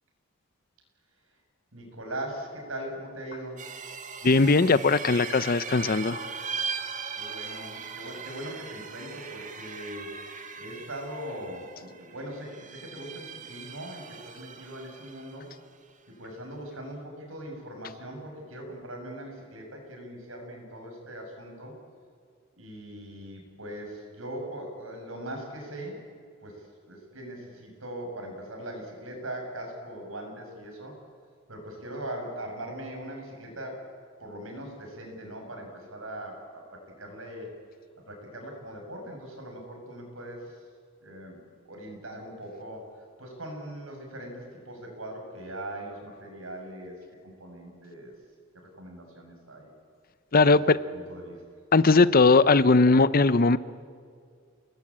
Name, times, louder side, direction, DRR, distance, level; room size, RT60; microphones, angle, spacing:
voice 1, 1.7-3.7 7.2-10.2 10.6-15.5 16.1-21.7 22.6-26.1 26.4-31.0 31.5-33.9 34.2-37.5 38.1-40.6 41.0-41.4 41.6-48.1 48.5-49.7 50.5-50.6 50.9-51.4, right 1 dB, 80° right, 2 dB, 7.5 m, -40 dB
sound 1, 3.6-15.6, right 6 dB, 40° right, 1.9 m, -39 dB
voice 2, 4.2-6.2 50.3-50.8 51.7-53.6, left 3 dB, 45° left, 16 dB, 0.7 m, -19 dB
30.0 x 20.0 x 8.8 m, 2.2 s
head